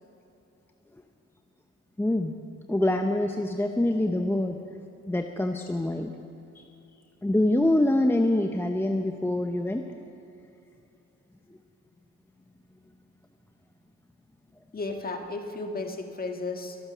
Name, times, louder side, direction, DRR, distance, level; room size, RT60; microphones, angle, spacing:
voice 1, 2.0-2.3 2.7-4.6 5.1-6.1 6.5-6.6 7.2-9.8, left 1 dB, 10° left, 4 dB, 0.8 m, -25 dB
voice 2, 14.7-16.8, left 3 dB, 30° left, 4 dB, 1.8 m, -34 dB
23.0 x 8.6 x 6.2 m, 2.8 s
cardioid pair, 90°, 30 cm